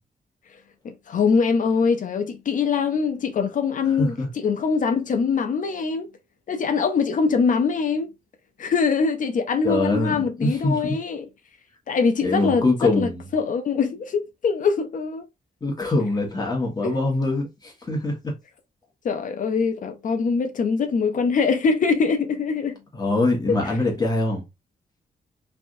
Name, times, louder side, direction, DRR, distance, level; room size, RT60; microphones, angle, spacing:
voice 1, 0.8-6.1 6.5-8.1 8.6-11.2 11.9-12.7 13.0-15.3 16.8-17.0 19.0-22.8, left 5 dB, 60° left, 0.5 m, -23 dB
voice 2, 4.0-4.3 9.6-11.0 12.2-13.3 15.6-18.3 22.9-24.4, left 2 dB, 25° left, 1.3 m, -23 dB
3.3 x 2.6 x 2.5 m
wide cardioid pair, 120°, 15 cm